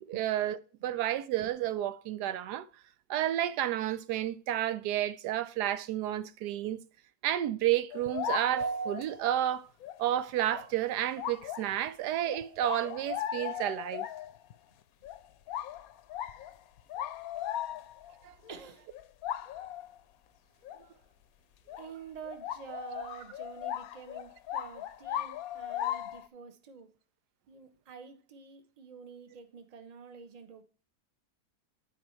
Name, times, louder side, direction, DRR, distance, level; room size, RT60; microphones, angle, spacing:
voice 1, 0.0-2.7 3.1-6.8 7.2-9.7 10.0-14.1 18.2-18.3, right 12 dB, 85° right, 1.2 m, -31 dB
sound 1, 7.9-9.2 9.8-10.0 10.5-10.7 11.2-11.9 12.2-14.5 15.0-15.2 15.5-18.1 18.5-18.6 18.9-20.0 20.6-20.8 21.7-21.9 22.3-26.3, left 11 dB, 70° left, 0.9 m, -38 dB
voice 2, 18.5-18.9 21.8-26.9 27.5-30.6, right 6 dB, 30° right, 0.8 m, -48 dB
12.0 x 4.8 x 3.1 m
omnidirectional pair, 1.7 m